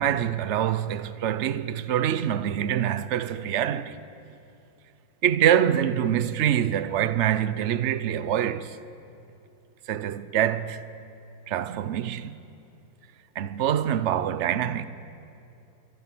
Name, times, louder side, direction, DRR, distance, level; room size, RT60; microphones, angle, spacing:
voice 1, 0.0-4.0 5.2-8.8 9.9-10.8 11.5-12.4 13.4-14.9, right 10 dB, 65° right, 0.7 m, -25 dB
28.0 x 23.0 x 6.0 m
omnidirectional pair, 2.0 m